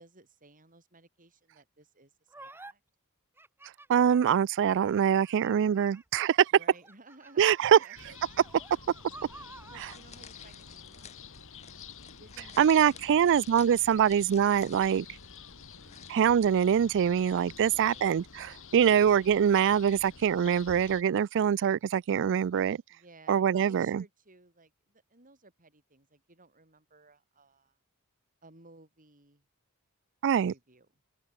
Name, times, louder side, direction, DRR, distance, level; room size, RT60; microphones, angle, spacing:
voice 1, 0.0-2.8 6.5-8.1 9.1-11.2 12.2-14.2 15.5-16.1 17.6-18.1 22.9-27.8 28.4-29.5 30.5-31.0, right 2 dB, 40° right, 7.8 m, -58 dB
sound 1, 2.3-2.7 3.4-6.2 6.8-10.0, right 2 dB, 10° right, 0.8 m, -52 dB
voice 2, 3.9-6.5 7.4-7.8 12.6-15.1 16.1-22.8 23.3-24.0 30.2-30.5, right 8 dB, 55° right, 0.3 m, -24 dB
sound 2, 7.9-21.0, left 6 dB, 60° left, 2.2 m, -49 dB
sound 3, 9.2-20.6, left 7 dB, 30° left, 1.9 m, -56 dB
open air
head